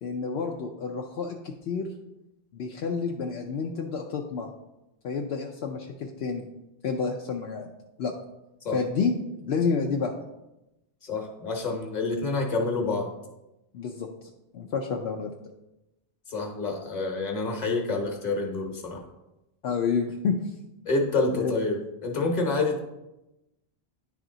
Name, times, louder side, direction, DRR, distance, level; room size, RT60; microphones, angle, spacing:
voice 1, 0.0-1.9 2.5-4.5 5.0-6.5 6.8-7.7 8.0-8.1 8.7-9.1 9.4-10.1 13.7-15.3 19.6-20.4 21.3-21.5, left 5 dB, 75° left, 2 dB, 0.8 m, -29 dB
voice 2, 11.0-13.1 16.3-19.0 20.8-22.8, left 3 dB, 40° left, 1 dB, 1.1 m, -28 dB
10.0 x 3.4 x 3.8 m, 0.95 s
omnidirectional pair, 1.1 m